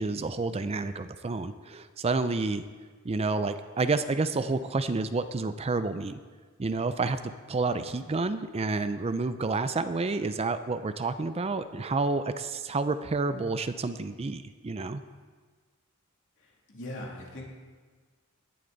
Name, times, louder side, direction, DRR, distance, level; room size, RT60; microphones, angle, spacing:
voice 1, 0.0-2.6 3.0-6.2 6.6-7.2 7.5-15.0, right 3 dB, 30° right, 11 dB, 0.4 m, -29 dB
voice 2, 16.4-17.4, left 1 dB, 65° left, -2 dB, 2.8 m, -41 dB
17.5 x 11.0 x 4.0 m, 1.5 s
head